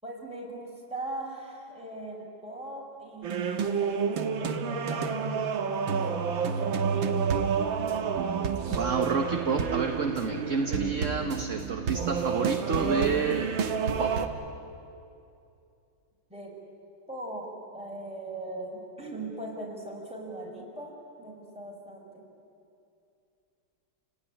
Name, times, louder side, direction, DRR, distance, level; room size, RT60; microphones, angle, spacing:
voice 1, 0.0-7.0 16.3-16.6 17.1-22.2, right 2 dB, 5° right, -3 dB, 5.5 m, -40 dB
sound 1, 3.2-14.3, right 6 dB, 90° right, 2.0 m, -29 dB
voice 2, 8.7-13.5 14.0-14.2, right 4 dB, 45° right, 4 dB, 1.5 m, -29 dB
30.0 x 18.0 x 10.0 m, 2.6 s
omnidirectional pair, 2.1 m